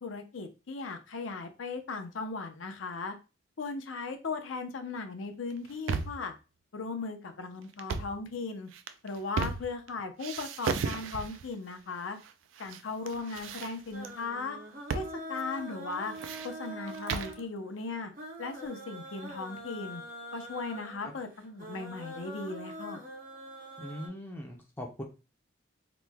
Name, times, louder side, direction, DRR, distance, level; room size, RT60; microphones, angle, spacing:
voice 1, 0.0-3.1 3.6-6.3 6.7-8.7 9.0-12.2 12.6-14.6 14.9-16.1 16.4-18.1 18.4-20.0 20.3-23.0, left 4 dB, 80° left, 6 dB, 0.6 m, -37 dB
sound 1, 5.5-6.3 7.7-8.2 8.7-9.9 10.2-11.5 12.2-12.8 13.1-14.1 14.9-15.1 15.4-15.5 15.9-17.4, right 5 dB, 80° right, 0.3 m, -35 dB
sound 2, 13.9-24.1, right 1 dB, 45° right, 0.7 m, -44 dB
voice 2, 23.8-25.0, equal, 10° left, 0 dB, 0.4 m, -41 dB
3.0 x 2.1 x 3.4 m, 0.30 s
head